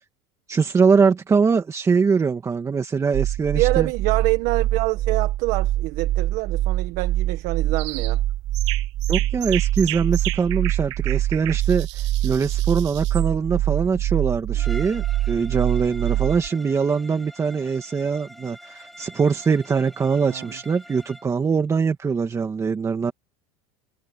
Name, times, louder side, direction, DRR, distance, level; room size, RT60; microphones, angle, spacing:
voice 1, 0.5-3.9 9.1-23.1, right 5 dB, 20° right, 2.2 m, -22 dB
sound 1, 3.1-16.5, right 14 dB, 35° right, 0.5 m, -24 dB
voice 2, 3.5-8.2 20.2-20.5, right 21 dB, 65° right, 1.6 m, -25 dB
sound 2, 7.8-8.1 8.5-13.3, right 19 dB, 85° right, 1.6 m, -34 dB
Bowed string instrument, 14.5-21.3, equal, ahead, 5.1 m, -45 dB
supercardioid pair, 130°, 15 cm